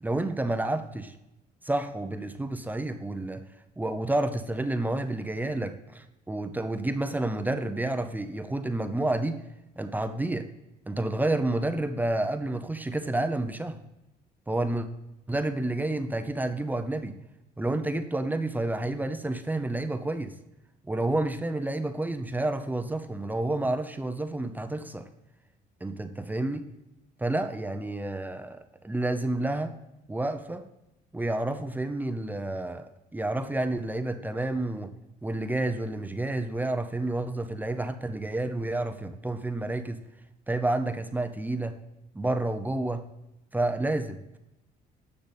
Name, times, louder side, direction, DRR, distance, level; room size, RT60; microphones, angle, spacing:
voice 1, 0.0-1.2 1.6-3.4 3.8-9.4 9.8-10.5 10.9-13.8 14.5-14.9 15.3-17.2 17.6-20.3 20.9-25.1 25.8-26.6 27.2-29.8 30.1-30.6 31.1-34.9 35.2-40.0 40.5-41.8 42.1-43.0 43.5-44.4, right 2 dB, 10° right, 9 dB, 0.7 m, -30 dB
10.5 x 6.7 x 4.2 m, 0.92 s
cardioid pair, 110°, 17 cm